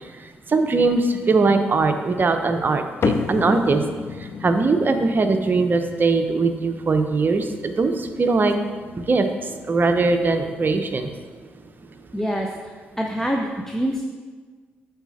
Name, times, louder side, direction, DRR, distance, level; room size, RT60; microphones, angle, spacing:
voice 1, 0.5-3.8 4.4-8.6 8.9-9.2 9.7-11.1, right 3 dB, 40° right, 6 dB, 0.8 m, -20 dB
sound 1, 3.0-9.7, left 5 dB, 55° left, 0.5 m, -33 dB
voice 2, 12.1-14.0, equal, 10° left, 0 dB, 0.7 m, -26 dB
8.1 x 4.2 x 4.1 m, 1.5 s
hypercardioid pair, 50°, 5 cm